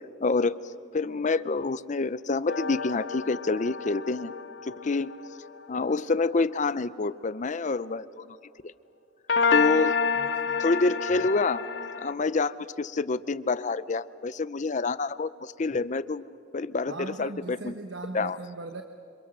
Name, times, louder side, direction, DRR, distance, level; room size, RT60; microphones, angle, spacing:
voice 1, 0.2-0.6 0.9-4.3 4.6-5.1 5.7-8.2 9.5-10.0 10.6-11.6 12.0-16.2 16.5-17.7 18.1-18.4, left 3 dB, 40° left, 16 dB, 0.5 m, -27 dB
sound 1, 2.5-6.0 9.3-12.1, left 5 dB, 65° left, 1.0 m, -29 dB
voice 2, 10.1-10.6 16.9-18.8, right 2 dB, 65° right, 6 dB, 1.2 m, -39 dB
28.5 x 26.0 x 6.6 m, 2.8 s
head